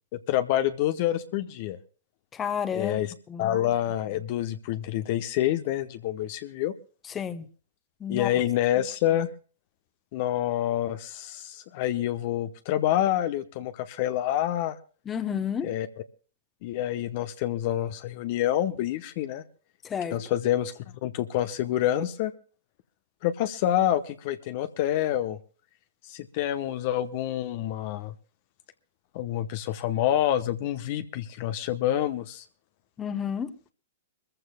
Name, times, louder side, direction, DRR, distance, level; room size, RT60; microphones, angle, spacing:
voice 1, 0.1-1.8 2.7-3.1 3.4-6.7 8.1-9.3 10.1-14.8 15.6-15.9 16.6-19.4 20.1-20.7 21.0-22.3 23.2-25.4 26.1-28.1 29.1-32.4, left 12 dB, 50° left, 0.9 m, -27 dB
voice 2, 2.3-3.0 3.3-3.5 7.1-7.5 8.0-8.3 15.1-15.7 19.8-20.2 33.0-33.5, left 7 dB, 20° left, 1.0 m, -30 dB
24.5 x 14.5 x 2.2 m
figure-of-eight pair, 110°, 0 cm